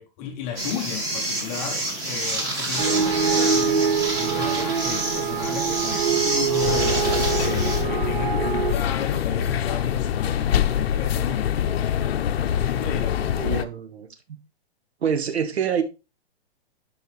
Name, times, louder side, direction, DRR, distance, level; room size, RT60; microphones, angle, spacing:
voice 1, 0.0-11.5 12.4-13.3, left 8 dB, 15° left, 0.6 m, -34 dB
sound 1, 0.6-7.8, right 1 dB, 10° right, 1.0 m, -28 dB
sound 2, 2.8-8.7, right 7 dB, 60° right, 0.9 m, -24 dB
sound 3, 6.6-13.6, left 9 dB, 75° left, 0.8 m, -24 dB
voice 2, 13.4-14.4 15.0-15.8, right 7 dB, 85° right, 1.6 m, -26 dB
11.5 x 4.7 x 3.2 m
hypercardioid pair, 175°, 31 cm